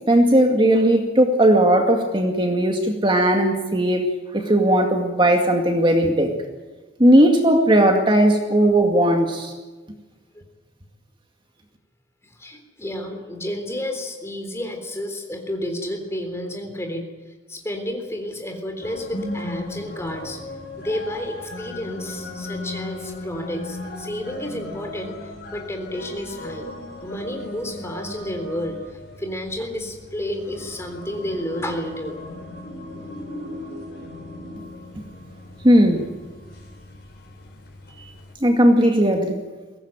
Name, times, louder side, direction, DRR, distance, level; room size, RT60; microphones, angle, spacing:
voice 1, 0.1-4.0 4.3-6.3 7.0-9.5 35.6-36.0 38.4-39.4, right 1 dB, 25° right, 3 dB, 2.2 m, -17 dB
voice 2, 12.2-17.1 17.5-20.5 20.8-26.7 27.0-28.8 29.2-32.2, left 1 dB, 15° left, 4 dB, 3.7 m, -31 dB
sound 1, 18.8-38.3, left 2 dB, 55° left, 5.6 m, -37 dB
22.5 x 18.0 x 9.1 m, 1.3 s
head